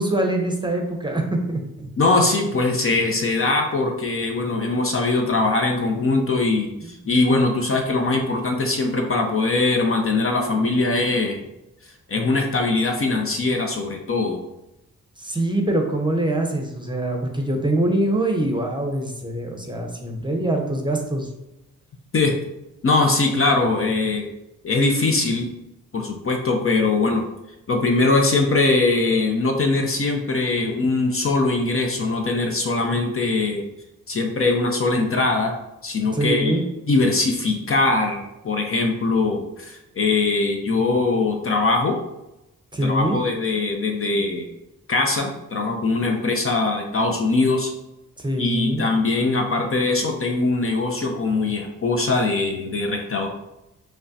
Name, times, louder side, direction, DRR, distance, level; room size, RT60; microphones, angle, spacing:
voice 1, 0.0-1.9 6.8-7.0 15.2-21.3 36.1-36.6 42.7-43.2 48.2-48.9, right 1 dB, 15° right, 2 dB, 0.7 m, -24 dB
voice 2, 2.0-11.4 12.1-14.4 22.1-22.3 22.8-24.2 24.6-25.5 25.9-27.2 27.7-33.6 34.1-35.5 35.8-36.6 36.9-42.0 42.8-44.5 44.9-47.7 48.4-53.3, left 3 dB, 40° left, 2 dB, 0.6 m, -21 dB
5.1 x 2.2 x 2.7 m, 0.92 s
supercardioid pair, 45°, 35 cm